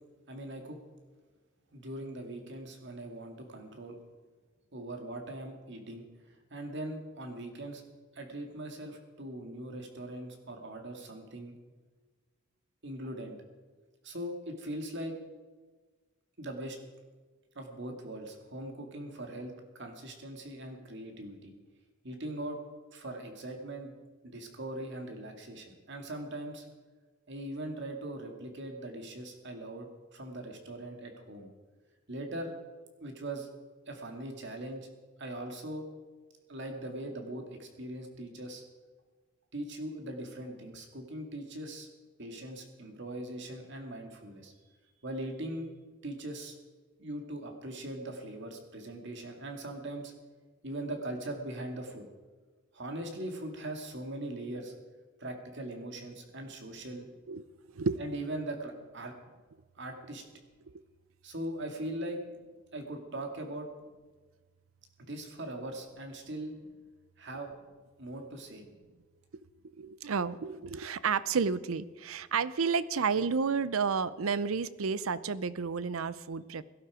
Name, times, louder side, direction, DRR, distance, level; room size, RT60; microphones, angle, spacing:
voice 1, 0.3-0.8 1.7-4.0 4.7-7.8 8.1-11.6 12.8-13.4 14.0-15.1 16.4-16.8 17.6-21.5 22.0-22.6 22.9-24.0 24.2-26.7 27.3-31.5 32.1-32.5 33.0-33.5 33.9-34.9 35.2-35.9 36.5-38.6 39.5-41.9 42.2-44.5 45.0-45.7 46.0-46.6 47.0-50.1 50.6-52.0 52.7-54.7 55.2-57.1 58.0-59.1 59.8-60.2 61.2-62.2 62.7-63.7 65.0-66.5 67.2-67.5 68.0-68.7, right 1 dB, 60° right, 3 dB, 2.2 m, -40 dB
voice 2, 69.8-76.6, right 5 dB, 85° right, 17 dB, 0.6 m, -31 dB
17.0 x 11.5 x 4.9 m, 1.4 s
head